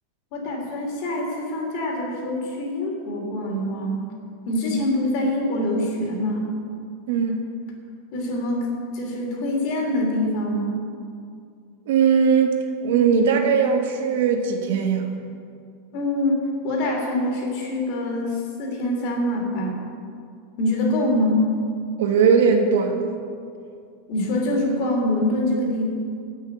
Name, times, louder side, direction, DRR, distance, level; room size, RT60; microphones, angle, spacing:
voice 1, 0.3-4.0 4.5-6.5 8.1-8.7 8.9-10.8 15.9-19.8 20.6-21.4 24.1-25.9, left 1 dB, 50° left, 0 dB, 3.3 m, -24 dB
voice 2, 7.1-7.4 11.9-15.1 22.0-23.2, right 6 dB, 75° right, 4 dB, 1.6 m, -19 dB
16.5 x 6.5 x 6.8 m, 2.3 s
supercardioid pair, 155°, 0 cm